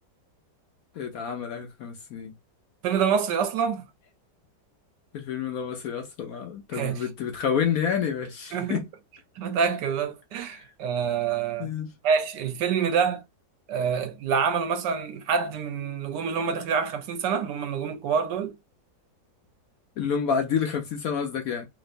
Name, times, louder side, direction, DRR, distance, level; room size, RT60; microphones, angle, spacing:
voice 1, 0.9-2.3 5.1-8.8 10.5-10.7 11.6-11.9 20.0-21.7, left 7 dB, 65° left, 0.9 m, -29 dB
voice 2, 2.8-3.8 6.7-7.0 8.5-8.8 9.4-11.7 12.0-13.2 13.7-18.5, right 6 dB, 75° right, 1.2 m, -26 dB
3.1 x 2.9 x 2.5 m
omnidirectional pair, 2.0 m